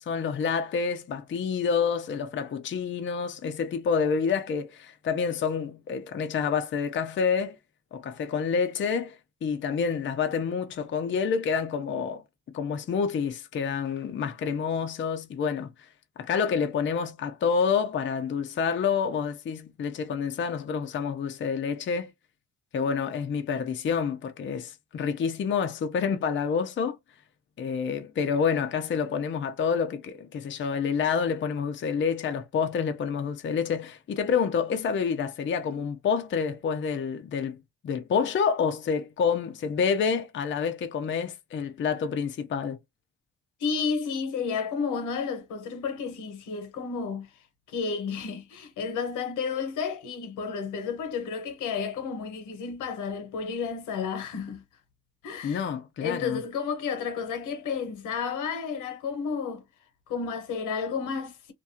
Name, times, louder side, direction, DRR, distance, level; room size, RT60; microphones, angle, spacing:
voice 1, 0.1-7.6 7.9-9.2 9.4-12.2 12.5-15.7 16.2-22.1 22.7-27.0 27.6-37.6 37.8-42.8 55.4-56.4, left 6 dB, 40° left, 0.5 m, -28 dB
voice 2, 43.6-47.3 47.7-54.6 55.2-55.7 56.0-59.6 60.1-61.5, left 5 dB, 85° left, 1.0 m, -31 dB
2.5 x 2.4 x 2.7 m
cardioid pair, 90°, 30 cm